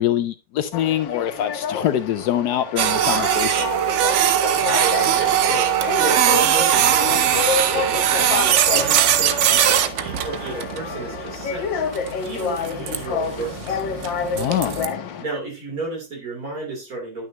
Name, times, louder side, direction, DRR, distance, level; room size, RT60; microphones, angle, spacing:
voice 1, 0.0-3.7 14.3-14.8, left 11 dB, 70° left, 11 dB, 1.0 m, -24 dB
sound 1, 0.7-15.2, left 6 dB, 85° left, 1.6 m, -29 dB
Printer, 2.8-14.9, right 10 dB, 80° right, 0.6 m, -20 dB
voice 2, 4.5-8.4 8.7-11.8 12.0-13.8 15.2-17.3, right 3 dB, 50° right, -1 dB, 3.5 m, -32 dB
10.5 x 6.2 x 2.8 m, 0.30 s
omnidirectional pair, 2.0 m